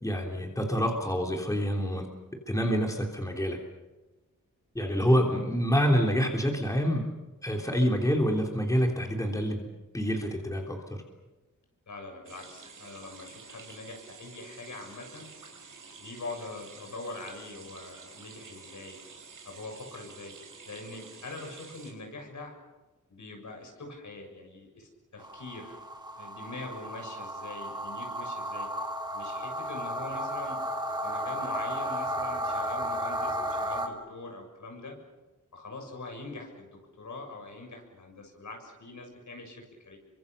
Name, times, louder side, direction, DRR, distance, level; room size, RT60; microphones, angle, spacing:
voice 1, 0.0-2.1 2.5-3.6 4.7-7.1 7.4-9.7 9.9-11.0, equal, 10° left, 1 dB, 3.3 m, -27 dB
voice 2, 11.9-15.3 16.0-19.0 19.4-20.3 20.7-22.5 23.1-25.8 26.2-28.7 29.1-30.6 31.0-35.0 35.5-40.0, left 2 dB, 70° left, 3 dB, 7.0 m, -43 dB
sound 1, 12.2-21.9, right 4 dB, 90° right, 5.0 m, -49 dB
sound 2, 25.2-33.9, equal, 15° right, 3.5 m, -34 dB
29.0 x 24.5 x 6.8 m, 1.1 s
wide cardioid pair, 145°, 31 cm